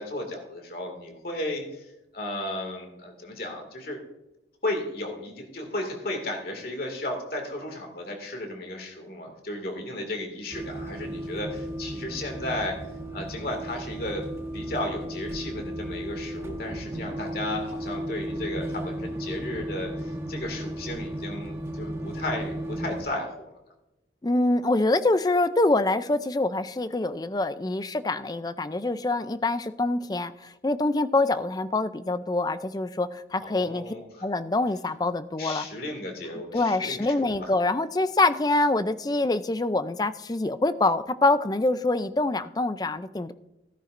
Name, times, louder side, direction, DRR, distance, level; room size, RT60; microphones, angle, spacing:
voice 1, 0.0-4.0 4.6-12.8 13.1-14.2 14.5-23.5 33.4-34.3 35.4-37.5, left 1 dB, 55° left, 3 dB, 2.2 m, -34 dB
sound 1, 10.5-23.0, right 1 dB, 15° right, 1.3 m, -35 dB
voice 2, 24.2-33.9 34.2-35.7 36.5-43.3, left 2 dB, 20° left, 12 dB, 0.4 m, -25 dB
16.5 x 10.0 x 2.6 m, 0.92 s
head